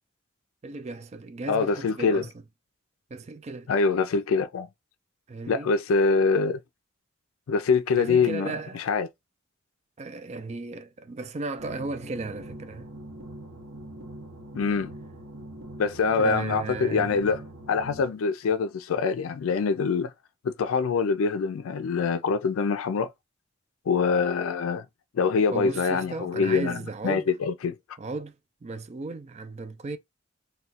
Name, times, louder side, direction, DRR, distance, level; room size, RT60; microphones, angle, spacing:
voice 1, 0.6-2.4 3.1-3.7 5.3-5.7 7.9-8.8 10.0-12.9 16.1-17.4 25.5-27.3 28.0-30.0, right 3 dB, 35° right, 0.4 m, -35 dB
voice 2, 1.5-2.2 3.7-4.7 5.5-6.6 7.5-8.5 8.7-9.1 14.5-14.9 15.8-17.4 17.7-20.1 20.4-23.1 23.9-24.8 25.1-26.8 27.0-27.7, left 5 dB, 85° left, 0.4 m, -24 dB
sound 1, 11.6-18.0, right 1 dB, 70° right, 0.8 m, -42 dB
2.4 x 2.2 x 4.0 m
head